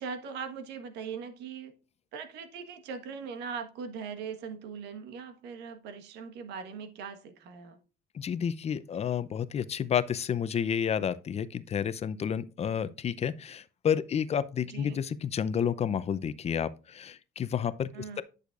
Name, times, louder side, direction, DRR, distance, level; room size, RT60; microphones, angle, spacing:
voice 1, 0.0-1.7 2.1-7.8 14.7-15.0 17.9-18.2, right 6 dB, 85° right, 1.4 m, -40 dB
voice 2, 8.1-17.9, left 8 dB, 40° left, 0.6 m, -30 dB
10.5 x 6.5 x 2.5 m
cardioid pair, 110°, 17 cm